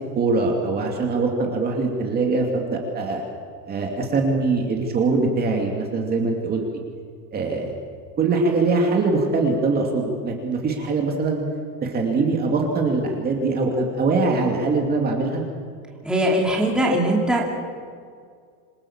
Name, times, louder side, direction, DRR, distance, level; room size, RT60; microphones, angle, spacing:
voice 1, 0.1-3.2 3.7-6.6 7.3-7.7 8.2-11.4 11.8-15.4, right 3 dB, 20° right, 1 dB, 2.5 m, -22 dB
voice 2, 16.0-17.5, right 1 dB, ahead, -2 dB, 2.7 m, -20 dB
27.0 x 22.0 x 7.3 m, 2.1 s
supercardioid pair, 170°, 49 cm